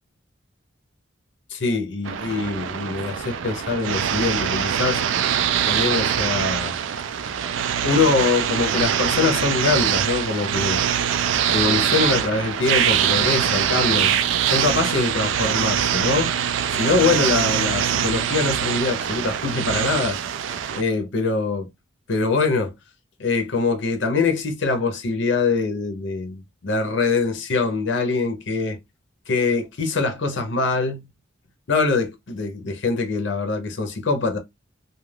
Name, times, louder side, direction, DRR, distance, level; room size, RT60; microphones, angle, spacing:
voice 1, 1.5-5.0 5.6-6.8 7.8-10.8 11.5-14.1 14.5-16.3 16.7-20.2 20.7-21.6 22.1-22.7 23.2-28.8 29.3-31.1 31.7-34.4, left 4 dB, 70° left, 0.6 m, -23 dB
sound 1, 2.1-20.8, right 9 dB, 75° right, 0.3 m, -23 dB
2.3 x 2.3 x 3.2 m
head